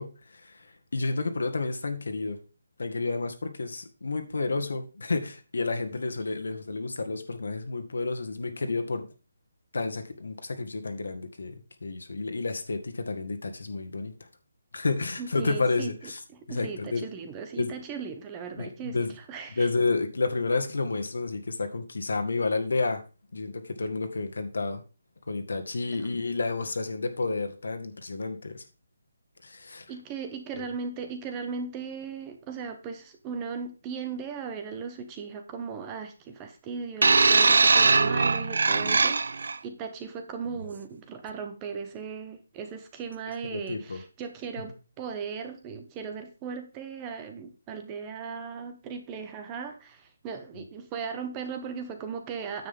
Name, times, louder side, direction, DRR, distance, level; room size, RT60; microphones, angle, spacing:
voice 1, 0.0-2.4 2.8-9.1 9.7-14.1 14.7-16.2 16.5-17.1 17.6-17.7 18.6-19.1 19.5-23.0 23.3-24.8 25.3-28.6 29.4-29.9 30.5-30.7 38.7-39.0 43.5-44.0, left 3 dB, 80° left, 6 dB, 1.8 m, -30 dB
voice 2, 15.2-15.9 16.3-19.7 29.9-52.7, right 5 dB, 15° right, 7 dB, 0.8 m, -37 dB
sound 1, 37.0-39.6 40.5-40.7, right 4 dB, 70° right, 0.4 m, -21 dB
9.5 x 7.8 x 3.7 m, 0.32 s
hypercardioid pair, 175°, 0 cm